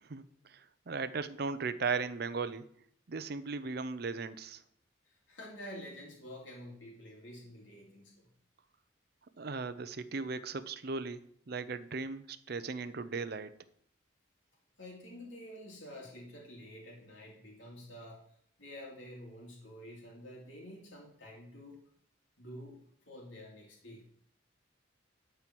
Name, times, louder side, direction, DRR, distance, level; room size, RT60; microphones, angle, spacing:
voice 1, 0.0-2.7 3.1-4.6 9.4-11.2 11.5-13.5, right 4 dB, 50° right, 13 dB, 0.6 m, -37 dB
voice 2, 5.1-8.3 14.8-18.2 18.6-21.8 22.4-22.8 23.1-24.0, equal, 75° left, -2 dB, 2.5 m, -49 dB
12.0 x 4.5 x 6.1 m, 0.65 s
head